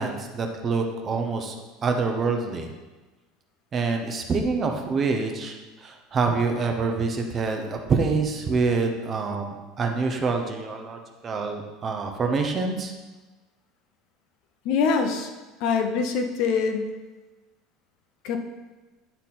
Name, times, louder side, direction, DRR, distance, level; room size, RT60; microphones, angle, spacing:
voice 1, 0.0-1.6 1.8-2.7 3.7-12.9, right 4 dB, 25° right, 4 dB, 0.8 m, -26 dB
voice 2, 14.6-15.3 15.6-16.9 18.2-18.4, left 5 dB, 55° left, 5 dB, 0.8 m, -24 dB
10.5 x 3.9 x 4.2 m, 1.2 s
cardioid pair, 160°, 0 cm